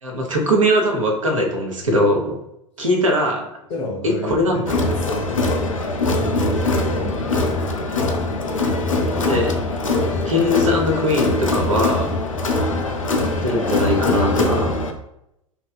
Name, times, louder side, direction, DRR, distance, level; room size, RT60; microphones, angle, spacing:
voice 1, 0.0-2.4 2.8-3.5 4.0-4.6 9.1-9.5 10.3-12.2 13.4-14.7, equal, 75° right, 1 dB, 0.7 m, -20 dB
voice 2, 3.7-7.5, right 1 dB, 35° left, -1 dB, 0.6 m, -31 dB
Crowd, 4.7-14.9, left 2 dB, 80° left, 0.4 m, -22 dB
2.7 x 2.3 x 2.2 m, 0.81 s
figure-of-eight pair, 85°, 17 cm